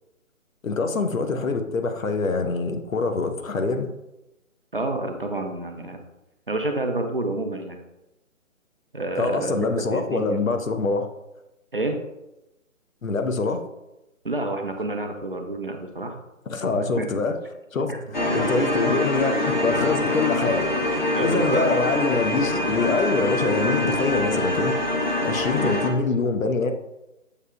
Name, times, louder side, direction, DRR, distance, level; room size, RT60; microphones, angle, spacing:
voice 1, 0.6-3.9 9.2-11.1 13.0-13.6 16.5-17.4 17.7-20.7 21.2-24.7 25.2-26.7, left 3 dB, 75° left, 7 dB, 0.6 m, -25 dB
voice 2, 4.7-6.0 6.5-7.8 8.9-10.4 11.7-12.0 14.2-16.2 16.8-17.1 17.9-18.0 18.3-18.4 21.1-21.7 25.5-25.8, right 2 dB, 45° right, 4 dB, 0.4 m, -28 dB
sound 1, 18.1-25.9, left 1 dB, 35° left, 0.6 m, -24 dB
6.5 x 2.7 x 2.3 m, 0.94 s
figure-of-eight pair, 145°, 41 cm